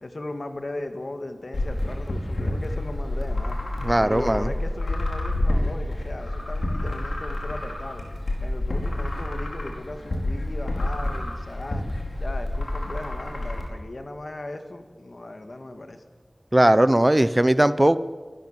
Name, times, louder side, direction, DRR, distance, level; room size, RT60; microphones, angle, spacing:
voice 1, 0.0-3.6 4.0-8.0 8.4-11.8 12.2-16.0, left 2 dB, 70° left, 7 dB, 2.2 m, -37 dB
sound 1, 1.5-13.6, left 1 dB, 90° left, 4.8 m, -28 dB
voice 2, 3.8-4.5 16.5-18.0, right 1 dB, 25° right, 14 dB, 0.9 m, -18 dB
30.0 x 15.0 x 7.6 m, 1.5 s
wide cardioid pair, 45°, 0 cm